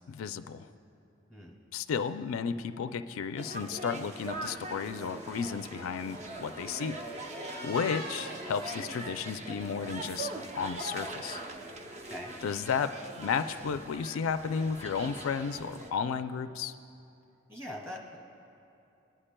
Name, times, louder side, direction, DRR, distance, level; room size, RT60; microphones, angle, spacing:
voice 1, 0.1-0.7 1.7-7.0 7.6-11.4 12.4-12.9 13.2-16.7, left 6 dB, 85° left, 10 dB, 0.4 m, -33 dB
sound 1, 3.4-15.9, right 2 dB, 35° right, 0.6 m, -42 dB
sound 2, 4.6-9.8, equal, 55° right, 1.3 m, -47 dB
voice 2, 17.5-18.2, left 1 dB, 15° right, -2 dB, 1.8 m, -42 dB
24.0 x 9.9 x 2.2 m, 2.8 s
head